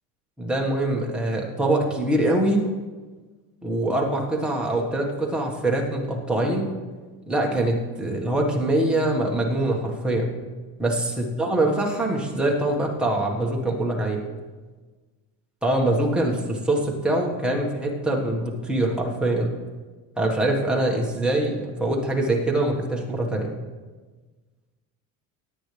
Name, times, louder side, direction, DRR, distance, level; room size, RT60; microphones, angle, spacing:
voice 1, 0.4-2.7 3.6-6.7 7.3-10.3 10.8-14.2 15.6-19.5 20.2-23.5, right 1 dB, 5° right, -2 dB, 1.5 m, -24 dB
18.0 x 9.3 x 3.4 m, 1.3 s
cardioid pair, 150°, 35 cm